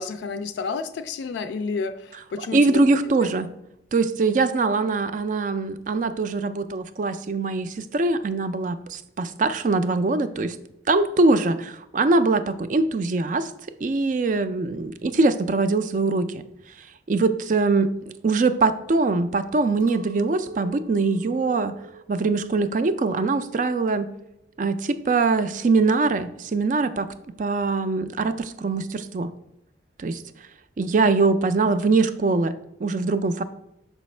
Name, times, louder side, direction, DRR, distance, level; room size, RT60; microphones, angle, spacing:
voice 1, 0.0-2.8 3.2-3.3, left 4 dB, 70° left, 10 dB, 0.3 m, -30 dB
voice 2, 2.5-3.5 3.9-10.6 10.9-13.5 13.8-16.4 17.1-21.7 22.1-24.1 24.6-27.1 27.4-29.3 30.0-30.2 30.8-32.5 32.8-33.4, right 3 dB, 45° right, 12 dB, 0.3 m, -22 dB
Chink clink, 19.8-24.2 24.5-25.1, right 2 dB, 85° right, 1.0 m, -45 dB
6.2 x 5.0 x 3.2 m, 0.81 s
head